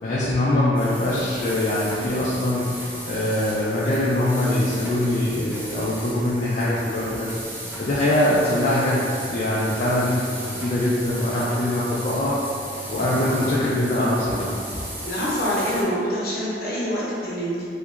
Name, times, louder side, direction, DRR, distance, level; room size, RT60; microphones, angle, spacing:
voice 1, 0.0-2.6 3.0-7.3 7.8-10.2 10.4-12.3 12.9-14.5 14.7-14.8, left 1 dB, 45° left, -8 dB, 0.4 m, -23 dB
sound 1, 0.7-15.8, right 1 dB, 15° right, 0.6 m, -36 dB
voice 2, 15.0-17.7, equal, 60° left, -7 dB, 0.8 m, -25 dB
3.3 x 2.9 x 2.4 m, 2.6 s
head